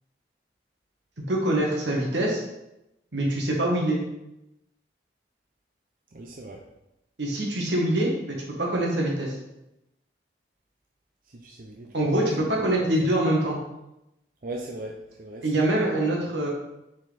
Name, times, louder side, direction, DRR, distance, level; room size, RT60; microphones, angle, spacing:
voice 1, 1.3-2.4 3.1-4.0 7.2-8.1 8.6-9.4 11.9-13.6 15.4-16.5, right 1 dB, 85° right, -1 dB, 1.7 m, -24 dB
voice 2, 6.1-6.6 11.3-11.9 14.4-15.5, right 2 dB, 50° right, 1 dB, 0.6 m, -38 dB
6.3 x 4.5 x 4.1 m, 0.89 s
head